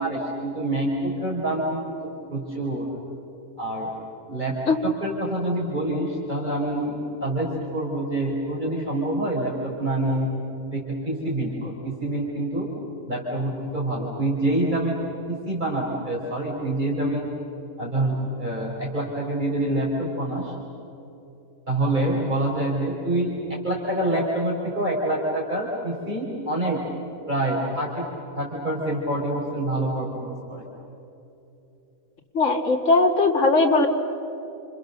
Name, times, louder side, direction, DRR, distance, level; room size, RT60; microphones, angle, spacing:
voice 1, 0.0-2.9 3.6-3.9 4.3-4.6 4.8-10.3 10.7-12.7 13.1-15.0 15.3-17.3 17.8-20.5 21.7-26.8 27.3-28.0 28.3-30.6, right 1 dB, 30° right, -3 dB, 4.4 m, -26 dB
voice 2, 32.3-33.9, left 3 dB, 60° left, 2 dB, 2.5 m, -19 dB
30.0 x 28.5 x 6.6 m, 3.0 s
omnidirectional pair, 1.5 m